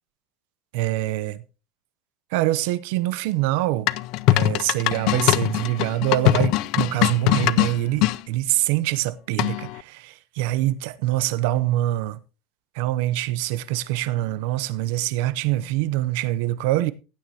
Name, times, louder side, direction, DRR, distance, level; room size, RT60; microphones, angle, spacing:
voice 1, 0.7-1.4 2.3-3.9 4.3-12.2 12.7-16.9, right 15 dB, 70° right, 0.6 m, -24 dB
sound 1, 3.9-8.2 9.4-9.8, left 16 dB, 55° left, 0.4 m, -21 dB
16.0 x 9.3 x 2.8 m
cardioid pair, 160°, 0 cm